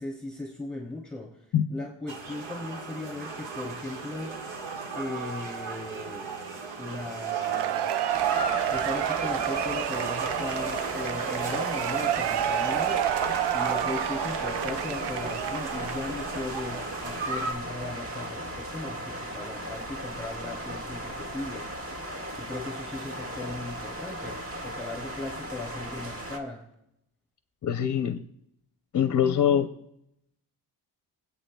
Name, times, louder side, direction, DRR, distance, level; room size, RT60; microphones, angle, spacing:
voice 1, 0.0-4.3 4.9-6.3 6.8-7.9 8.7-13.0 13.5-22.1 22.4-26.6, left 2 dB, ahead, -3 dB, 2.8 m, -38 dB
sound 1, 2.1-17.5, right 4 dB, 90° right, 1.6 m, -36 dB
Cheering / Applause / Crowd, 7.2-16.1, right 11 dB, 65° right, 0.6 m, -29 dB
sound 2, 8.1-26.4, right 1 dB, 30° right, 1.9 m, -37 dB
voice 2, 27.6-28.2 28.9-29.7, left 9 dB, 40° left, 8 dB, 0.6 m, -23 dB
23.5 x 8.4 x 2.2 m, 0.81 s
cardioid pair, 90°, 44 cm